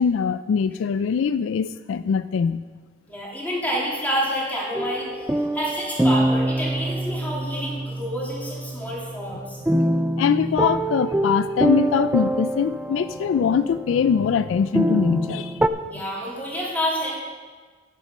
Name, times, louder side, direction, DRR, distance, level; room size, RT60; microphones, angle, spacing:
voice 1, 0.0-2.6 9.7-9.9 10.2-15.6, left 6 dB, 75° left, 14 dB, 0.3 m, -22 dB
voice 2, 3.1-9.6 15.9-17.1, equal, 10° left, -5 dB, 2.8 m, -28 dB
sound 1, 4.7-15.7, right 1 dB, 10° right, 0.3 m, -25 dB
10.5 x 8.6 x 5.5 m, 1.5 s
head